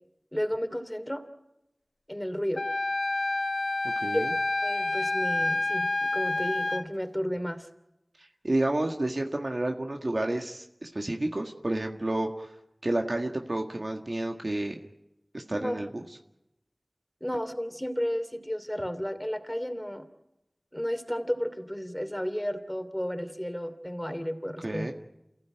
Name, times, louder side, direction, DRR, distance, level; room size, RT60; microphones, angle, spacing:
voice 1, 0.3-1.2 2.1-2.6 4.1-4.3 4.6-7.7 15.5-15.8 17.2-20.1 20.7-24.9, equal, 10° left, 7 dB, 2.9 m, -32 dB
Wind instrument woodwind instrument, 2.6-6.8, left 2 dB, 85° left, 1.1 m, -28 dB
voice 2, 3.8-4.3 8.2-12.5 12.8-14.8 15.3-16.1 24.6-24.9, right 1 dB, 55° right, 3 dB, 1.7 m, -30 dB
29.0 x 15.5 x 9.1 m, 0.90 s
wide cardioid pair, 45°, 0 cm